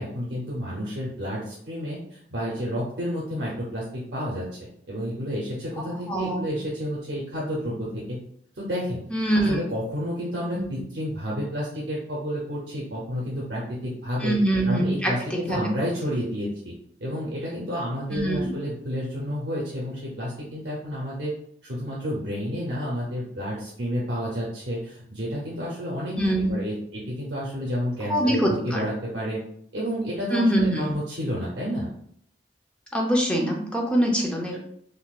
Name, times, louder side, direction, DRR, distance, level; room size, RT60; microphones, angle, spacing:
voice 1, 0.0-4.5 4.9-8.2 8.6-9.0 9.3-14.3 14.7-16.7 17.0-21.3 21.6-26.1 26.5-29.4 29.7-31.9, equal, 70° right, -5 dB, 0.8 m, -30 dB
voice 2, 5.8-6.5 9.1-9.6 10.5-10.7 14.2-15.6 18.1-18.5 26.2-26.5 28.1-28.9 30.3-31.0 32.9-34.6, right 1 dB, 5° left, -1 dB, 0.6 m, -24 dB
3.8 x 2.6 x 2.4 m, 0.69 s
head